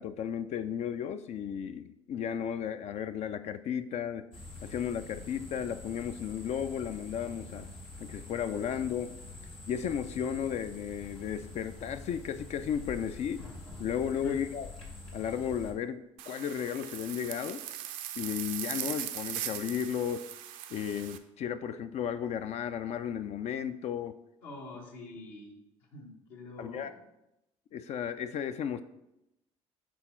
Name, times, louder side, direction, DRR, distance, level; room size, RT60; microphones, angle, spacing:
voice 1, 0.0-4.2 4.6-7.7 8.0-9.1 9.7-13.4 13.8-14.7 15.1-16.0 16.3-17.6 18.2-20.3 20.7-24.2 26.6-26.9 27.7-28.8, left 8 dB, 45° left, 11 dB, 0.4 m, -34 dB
sound 1, 4.3-15.7, left 2 dB, 90° left, 1.2 m, -46 dB
sound 2, 16.2-21.2, right 11 dB, 60° right, 0.5 m, -39 dB
voice 2, 24.4-25.5 25.8-26.9, left 2 dB, 70° left, -1 dB, 1.3 m, -46 dB
6.1 x 3.5 x 4.4 m, 0.89 s
figure-of-eight pair, 55°, 15 cm